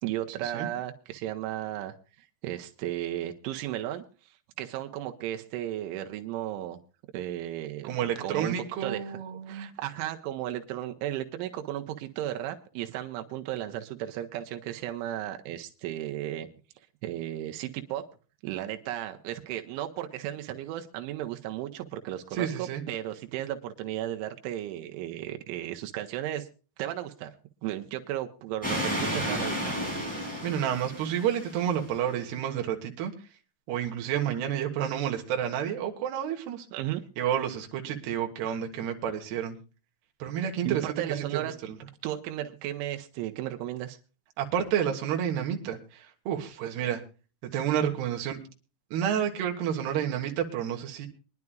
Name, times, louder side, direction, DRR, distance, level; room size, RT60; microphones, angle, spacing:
voice 1, 0.0-4.0 4.6-6.8 7.1-7.9 8.2-8.5 8.8-9.2 9.5-16.5 17.0-18.0 18.4-26.5 26.8-27.4 27.6-29.7 36.7-37.0 40.6-41.5 42.0-44.0, right 13 dB, 85° right, 5 dB, 3.3 m, -34 dB
voice 2, 7.8-9.7 22.3-22.8 30.4-33.1 33.7-36.7 37.2-39.6 40.2-41.8 44.4-47.0 47.5-48.4 48.9-51.1, right 9 dB, 70° right, 3 dB, 3.3 m, -30 dB
sound 1, 28.6-32.0, equal, ahead, 5.6 m, -32 dB
24.5 x 10.5 x 2.3 m, 0.35 s
omnidirectional pair, 5.4 m